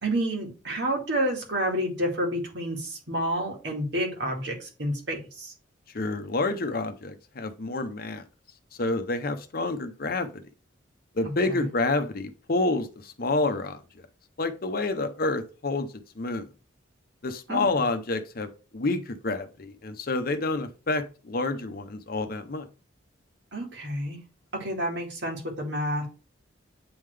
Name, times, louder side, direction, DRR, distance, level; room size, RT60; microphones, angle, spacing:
voice 1, 0.0-5.5 11.2-11.7 17.5-17.8 23.5-24.2 24.5-26.1, right 1 dB, 60° right, 0 dB, 2.1 m, -29 dB
voice 2, 5.9-8.2 8.8-10.4 11.2-13.8 14.4-15.9 16.2-16.5 17.2-22.6, left 2 dB, 50° left, 9 dB, 0.7 m, -28 dB
8.6 x 3.7 x 3.3 m, 0.34 s
head